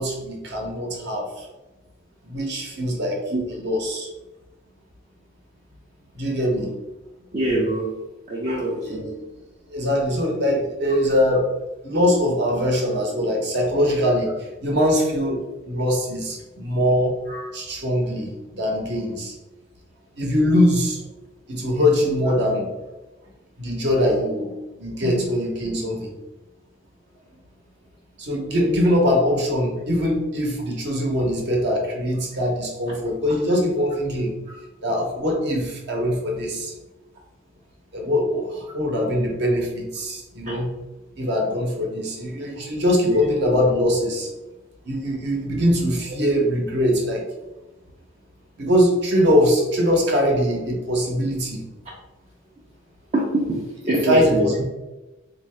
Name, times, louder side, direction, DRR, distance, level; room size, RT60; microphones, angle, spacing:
voice 1, 0.0-1.5 2.2-3.2 3.5-4.1 6.1-6.7 8.5-9.1 9.7-11.5 11.8-17.2 17.5-19.3 20.2-21.0 21.5-22.7 23.6-26.1 28.2-34.3 34.8-36.7 37.9-40.7 41.2-44.3 44.8-47.2 48.6-51.6 54.0-54.6, equal, 55° right, 0 dB, 0.8 m, -22 dB
voice 2, 7.3-7.8 8.3-9.1 17.3-17.5 25.0-25.2 28.6-28.7 43.1-43.2 53.1-54.4, right 1 dB, 35° right, -4 dB, 0.5 m, -24 dB
3.6 x 2.6 x 3.2 m, 1.1 s
head